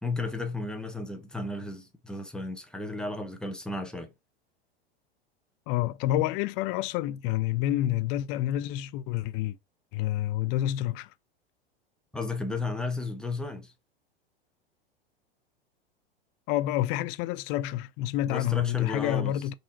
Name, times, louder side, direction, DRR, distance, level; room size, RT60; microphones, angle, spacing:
voice 1, 0.0-4.1 12.1-13.7 18.3-19.4, left 3 dB, 5° left, 0.8 m, -33 dB
voice 2, 5.7-9.6 9.9-11.1 16.5-19.5, left 13 dB, 40° left, 0.4 m, -28 dB
5.1 x 2.8 x 2.8 m
hypercardioid pair, 95°, 31 cm